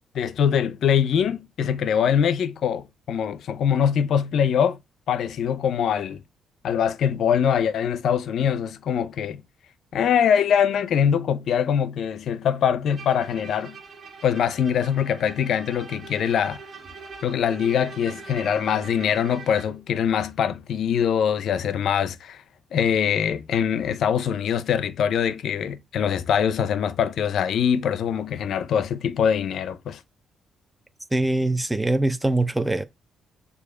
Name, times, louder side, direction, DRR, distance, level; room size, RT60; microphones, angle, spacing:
voice 1, 0.1-4.8 5.1-6.2 6.6-9.4 9.9-13.8 14.2-16.6 17.2-22.4 22.7-30.0, left 8 dB, 70° left, 0.6 m, -23 dB
Bowed string instrument, 12.9-19.8, right 4 dB, 45° right, 1.5 m, -42 dB
voice 2, 31.1-32.8, right 2 dB, 10° right, 0.7 m, -23 dB
6.8 x 2.8 x 4.9 m
cardioid pair, 90°, 0 cm